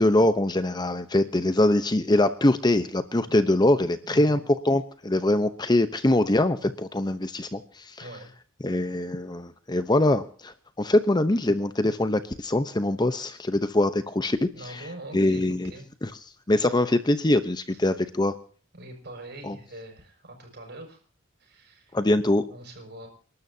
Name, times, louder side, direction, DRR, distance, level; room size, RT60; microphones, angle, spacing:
voice 1, 0.0-4.4 4.6-8.0 8.6-14.8 15.1-15.7 16.0-16.1 16.5-18.3 19.4-19.6 21.9-22.4, left 1 dB, 20° left, 11 dB, 0.8 m, -23 dB
voice 2, 4.1-4.4 8.0-8.3 14.5-15.9 17.7-17.8 18.8-21.0 21.4-22.0 22.5-23.1, right 1 dB, 55° right, 3 dB, 6.6 m, -43 dB
29.0 x 12.5 x 2.8 m, 0.43 s
head